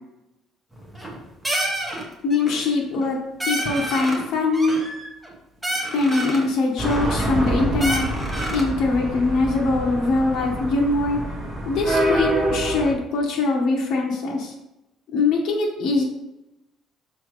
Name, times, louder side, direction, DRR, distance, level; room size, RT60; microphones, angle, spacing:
sound 1, 0.8-1.2 1.4-2.0 2.3-2.7 3.0-3.1 3.4-4.2 4.5-5.3 5.6-6.5 6.9-7.5 7.8-8.7, right 1 dB, 5° right, 1.2 m, -28 dB
voice 1, 2.2-3.2 3.5-4.8 5.9-8.1 8.5-11.2 11.6-14.5 15.1-16.0, left 3 dB, 55° left, -1 dB, 1.3 m, -22 dB
sound 2, 6.8-12.9, right 1 dB, 25° right, 1.8 m, -26 dB
6.3 x 6.0 x 3.2 m, 0.92 s
cardioid pair, 150°, 0 cm